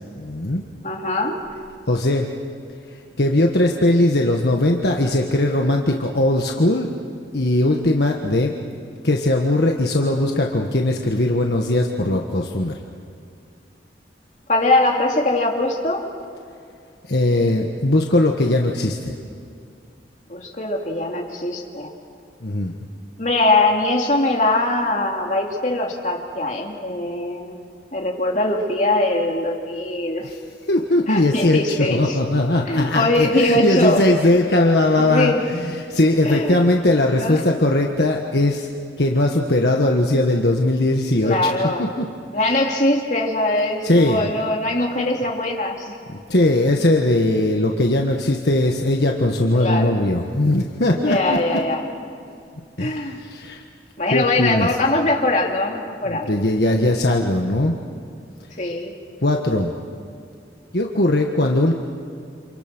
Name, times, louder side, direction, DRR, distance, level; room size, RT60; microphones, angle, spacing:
voice 1, 0.1-0.6 1.9-2.3 3.2-6.9 7.3-8.5 9.0-12.8 17.1-19.2 22.4-22.8 30.2-30.4 30.7-31.6 31.9-38.7 39.0-41.4 41.8-42.0 43.8-44.3 46.1-51.4 52.8-53.6 54.1-54.7 56.0-57.7 59.2-59.7 60.7-61.7, left 1 dB, 65° left, 1 dB, 1.6 m, -19 dB
voice 2, 0.8-1.4 14.5-16.0 20.3-21.9 23.2-30.3 31.1-32.2 32.7-34.0 35.0-35.4 36.2-36.6 37.2-37.4 41.2-41.9 42.3-46.0 49.5-50.0 51.0-51.8 52.8-53.2 54.0-56.3 58.6-58.9, left 2 dB, 45° left, 0 dB, 3.1 m, -21 dB
30.0 x 27.5 x 6.3 m, 2.4 s
head